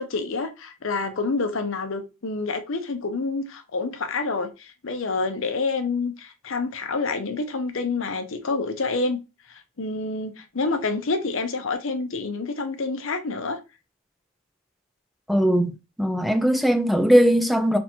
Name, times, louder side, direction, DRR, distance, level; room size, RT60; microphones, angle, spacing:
voice 1, 0.0-9.2 9.5-13.6, left 3 dB, 60° left, 0.7 m, -28 dB
voice 2, 15.3-17.8, equal, ahead, 0.4 m, -20 dB
3.5 x 2.9 x 4.3 m
head